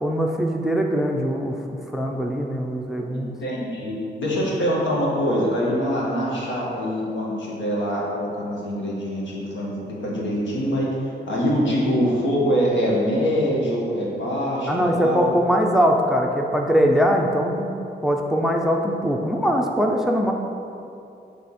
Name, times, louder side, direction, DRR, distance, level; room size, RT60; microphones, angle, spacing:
voice 1, 0.0-1.6 1.9-3.3 14.7-17.7 18.0-20.3, equal, ahead, 1 dB, 0.4 m, -21 dB
voice 2, 3.4-15.3, equal, 85° left, -5 dB, 1.4 m, -24 dB
6.5 x 3.4 x 4.2 m, 2.7 s
wide cardioid pair, 100°, 19 cm